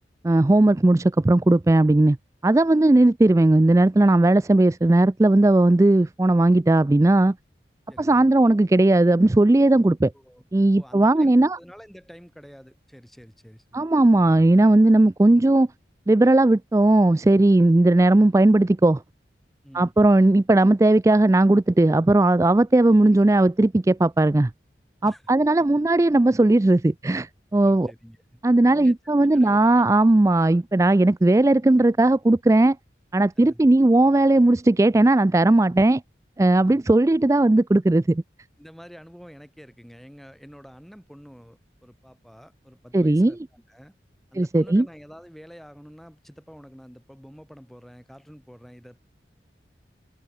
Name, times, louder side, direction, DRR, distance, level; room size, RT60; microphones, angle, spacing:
voice 1, 0.2-2.2 2.4-7.3 8.0-10.1 10.5-11.6 13.7-15.7 16.1-19.0 19.7-24.5 25.0-27.9 28.4-32.8 33.1-36.0 36.4-38.2 42.9-43.3 44.4-44.9, right 2 dB, 15° right, 0.3 m, -17 dB
voice 2, 7.9-8.3 10.1-10.4 10.7-14.3 19.6-19.9 25.0-25.7 27.6-28.4 28.7-28.9 29.3-29.6 33.4-33.6 36.6-36.8 38.6-43.9 44.3-49.0, equal, ahead, 6.7 m, -47 dB
head